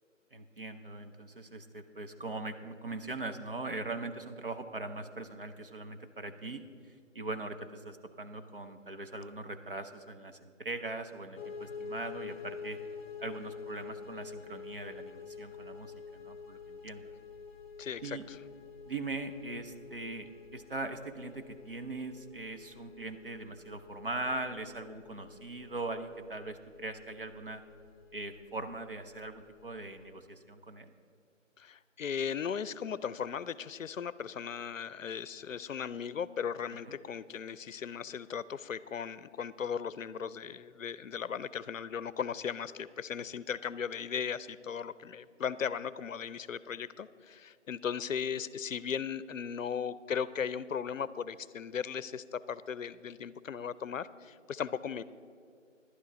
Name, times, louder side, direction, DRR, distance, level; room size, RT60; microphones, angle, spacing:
voice 1, 0.3-12.8 13.2-17.1 18.0-18.2 18.9-27.6 28.1-30.9 36.9-37.0, right 2 dB, 45° right, 7 dB, 0.7 m, -41 dB
sound 1, 11.4-30.1, left 5 dB, 20° right, 1.0 m, -48 dB
voice 2, 17.8-18.4 31.6-55.0, left 7 dB, 75° left, 17 dB, 0.6 m, -37 dB
11.5 x 9.6 x 5.1 m, 2.3 s
figure-of-eight pair, 170°, 39 cm